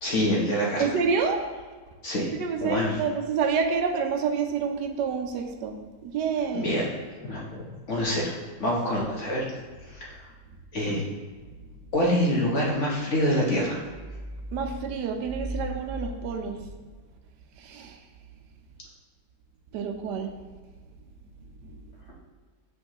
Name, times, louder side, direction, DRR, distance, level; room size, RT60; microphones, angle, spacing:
voice 1, 0.0-1.0 2.0-2.3 2.6-3.0 6.5-6.9 7.2-8.3 8.6-9.4 9.9-10.2 10.7-11.0 11.9-13.8, equal, 50° left, -3 dB, 1.2 m, -26 dB
voice 2, 0.8-1.4 2.2-5.8 6.0-6.8 9.0-9.1 14.5-16.7 17.5-18.0 19.7-20.3 21.6-21.8, right 5 dB, 80° right, 5 dB, 1.3 m, -28 dB
7.9 x 4.6 x 2.9 m, 1.4 s
omnidirectional pair, 1.8 m